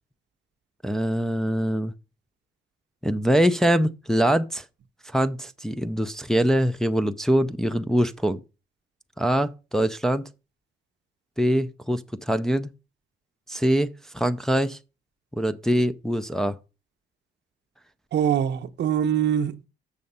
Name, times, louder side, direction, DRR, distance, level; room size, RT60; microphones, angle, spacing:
voice 1, 0.8-1.9 3.0-4.6 5.1-8.4 9.2-10.2 11.4-12.7 13.5-14.8 15.3-16.6, equal, ahead, 0.5 m, -23 dB
voice 2, 18.1-19.7, right 9 dB, 60° right, 0.8 m, -23 dB
6.8 x 6.4 x 5.4 m
cardioid pair, 90°, 20 cm